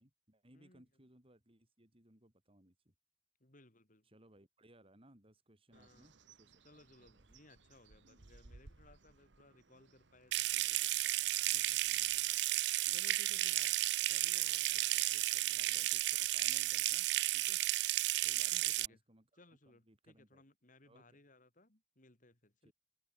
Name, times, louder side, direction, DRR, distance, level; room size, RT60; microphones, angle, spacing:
voice 1, 0.0-2.9 4.0-6.6 7.0-7.3 11.8-12.3 12.9-13.6 14.7-14.9 15.5-17.1 17.3-17.6 18.2-20.4 20.8-21.2 22.6-22.7, right 1 dB, 30° right, 6.0 m, -65 dB
voice 2, 0.5-0.9 3.4-4.1 5.7-6.1 6.6-10.9 11.5-11.9 12.9-13.7 14.1-15.9 18.5-19.0 19.3-22.7, left 2 dB, 45° left, 4.2 m, -63 dB
Bird, 5.7-12.4, right 3 dB, 85° right, 1.3 m, -63 dB
Water tap faucet / Sink (filling or washing) / Trickle dribble, 10.3-18.9, right 17 dB, 70° right, 0.4 m, -33 dB
open air
head